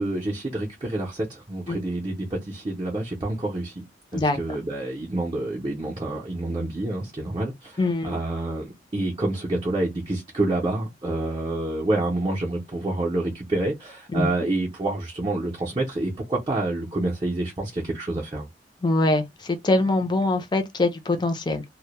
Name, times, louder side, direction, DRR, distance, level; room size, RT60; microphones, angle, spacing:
voice 1, 0.0-3.8 4.1-7.8 8.0-18.5, right 2 dB, 25° right, 0.5 m, -28 dB
voice 2, 7.8-8.2 14.1-14.3 18.8-21.6, left 2 dB, 25° left, 0.4 m, -23 dB
2.1 x 2.0 x 2.8 m
head